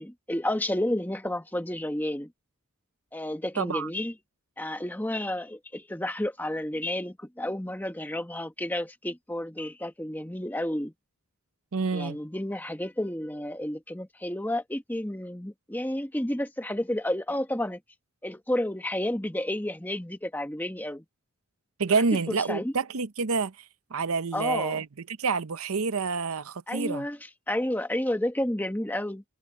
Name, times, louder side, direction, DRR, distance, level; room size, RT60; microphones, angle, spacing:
voice 1, 0.0-2.3 3.1-4.1 4.6-10.9 11.9-17.8 18.2-21.0 21.9-22.0 22.3-22.7 24.3-24.8 26.7-27.2 27.5-29.2, left 1 dB, 10° left, 1.2 m, -31 dB
voice 2, 3.6-3.9 11.7-12.2 21.8-23.5 23.9-27.1, right 4 dB, 70° right, 0.7 m, -28 dB
head